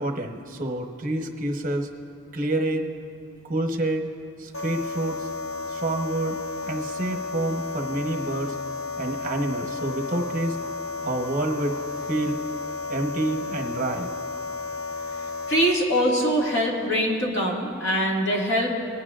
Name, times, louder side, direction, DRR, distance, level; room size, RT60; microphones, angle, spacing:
voice 1, 0.0-1.9 2.3-2.9 3.5-4.1 4.4-5.3 5.7-8.5 9.0-10.6 11.0-11.8 12.1-12.4 12.9-14.1, right 1 dB, 40° right, 4 dB, 1.0 m, -28 dB
sound 1, 4.5-15.7, left 3 dB, 80° left, 0.8 m, -33 dB
voice 2, 15.5-18.7, equal, 55° left, -2 dB, 2.0 m, -23 dB
20.5 x 10.5 x 2.5 m, 2.4 s
head